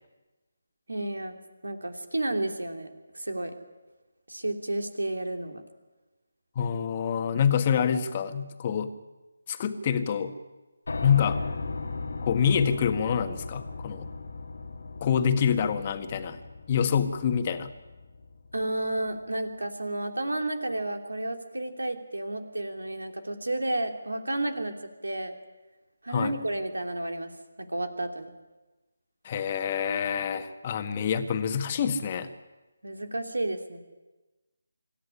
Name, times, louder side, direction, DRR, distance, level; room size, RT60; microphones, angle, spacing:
voice 1, 0.9-1.4 1.6-3.6 4.3-5.6 18.5-24.7 25.0-25.4 26.0-27.3 27.6-28.3 32.8-33.8, right 1 dB, 75° right, 5 dB, 3.1 m, -31 dB
voice 2, 6.5-8.9 9.5-10.3 11.0-11.4 12.2-14.1 15.0-16.4 16.7-17.7 26.1-26.3 29.2-32.3, left 7 dB, 30° left, 7 dB, 1.7 m, -26 dB
Piano, 10.9-18.9, left 3 dB, 65° left, 1.8 m, -37 dB
26.0 x 13.5 x 10.0 m, 1.2 s
figure-of-eight pair, 155°, 0 cm